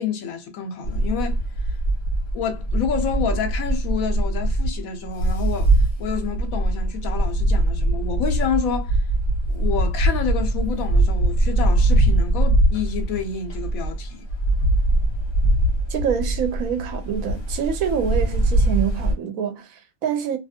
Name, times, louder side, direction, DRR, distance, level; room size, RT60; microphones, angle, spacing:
voice 1, 0.0-1.4 2.3-5.7 6.0-9.0 9.5-14.3, left 7 dB, 80° left, 1.1 m, -28 dB
sound 1, 0.8-19.1, right 1 dB, 50° left, 1.2 m, -22 dB
voice 2, 15.9-20.4, right 8 dB, 80° right, 1.1 m, -26 dB
2.8 x 2.4 x 2.7 m
omnidirectional pair, 1.4 m